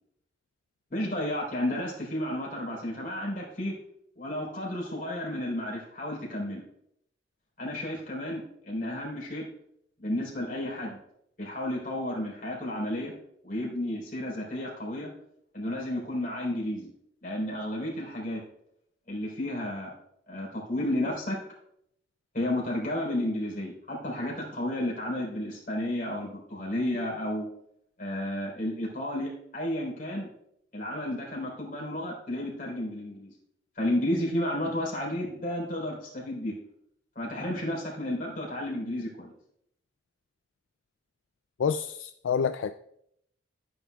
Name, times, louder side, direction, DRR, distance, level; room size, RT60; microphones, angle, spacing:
voice 1, 0.9-3.7 4.1-6.6 7.6-9.5 10.0-11.0 11.4-13.1 13.4-15.1 15.5-16.9 17.2-18.4 19.1-19.9 20.3-21.4 22.3-27.5 28.0-30.3 30.7-33.3 33.8-36.5 37.2-39.3, left 1 dB, 45° left, -3 dB, 4.0 m, -32 dB
voice 2, 41.6-42.7, left 6 dB, 75° left, 10 dB, 0.4 m, -28 dB
15.5 x 9.6 x 2.3 m, 0.73 s
head